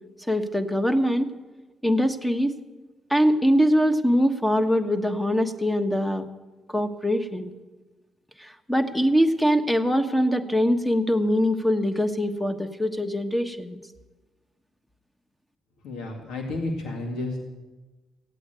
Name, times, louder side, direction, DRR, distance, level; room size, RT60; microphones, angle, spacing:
voice 1, 0.3-1.3 1.8-2.5 3.1-6.3 6.7-7.5 8.4-13.8, equal, 10° left, 7 dB, 1.3 m, -23 dB
voice 2, 15.8-17.4, left 2 dB, 85° left, 2 dB, 2.2 m, -31 dB
16.0 x 8.5 x 9.0 m, 1.2 s
cardioid pair, 90°, 0 cm